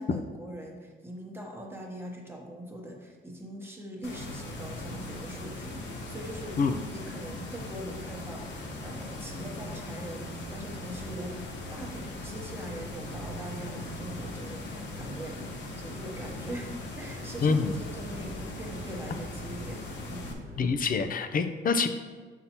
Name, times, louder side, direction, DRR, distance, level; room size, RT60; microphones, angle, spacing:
voice 1, 0.0-20.4, right 1 dB, 10° right, -1 dB, 1.0 m, -42 dB
sound 1, 4.0-20.3, left 2 dB, 65° left, 1.0 m, -40 dB
sound 2, 4.1-21.0, right 2 dB, 85° right, 1.1 m, -46 dB
voice 2, 17.4-17.7 20.6-21.9, left 5 dB, 45° left, 9 dB, 0.5 m, -26 dB
6.5 x 5.6 x 2.9 m, 1.4 s
cardioid pair, 90°, 20 cm